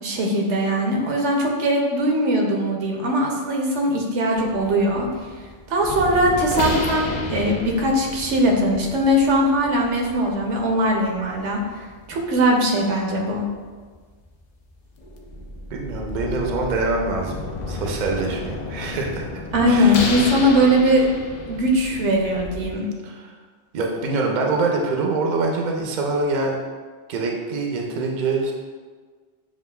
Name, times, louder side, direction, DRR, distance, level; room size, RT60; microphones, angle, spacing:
voice 1, 0.0-5.1 5.7-11.6 12.1-13.4 19.5-21.1 21.5-22.9, equal, 80° right, 0 dB, 1.0 m, -20 dB
sound 1, 4.3-22.8, left 3 dB, 60° left, 0.4 m, -32 dB
voice 2, 15.7-19.3 19.7-20.1 23.0-23.3 23.7-26.6 27.1-28.5, right 3 dB, 55° right, 0 dB, 0.6 m, -25 dB
7.2 x 2.4 x 2.2 m, 1.5 s
omnidirectional pair, 1.2 m